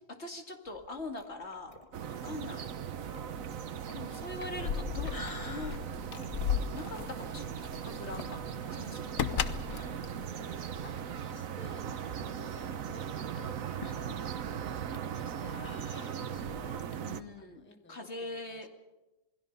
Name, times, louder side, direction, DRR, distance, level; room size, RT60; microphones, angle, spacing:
voice 1, 0.2-1.7 2.2-2.7 3.9-5.2 5.4-5.7 6.7-8.4 8.7-9.2 17.1-18.7, left 2 dB, 55° left, 3 dB, 2.6 m, -42 dB
sound 1, 0.7-10.9 11.2-11.3 11.6-11.7 12.5-17.0, left 2 dB, 25° left, 1.5 m, -50 dB
sound 2, 1.9-17.2, right 8 dB, 90° right, 1.3 m, -39 dB
Keys jangling, 4.2-11.2, left 8 dB, 85° left, 1.4 m, -36 dB
voice 2, 9.7-14.2 14.8-16.8 17.4-18.7, left 2 dB, 10° left, 6 dB, 1.2 m, -54 dB
27.5 x 21.5 x 5.4 m, 1.1 s
omnidirectional pair, 1.4 m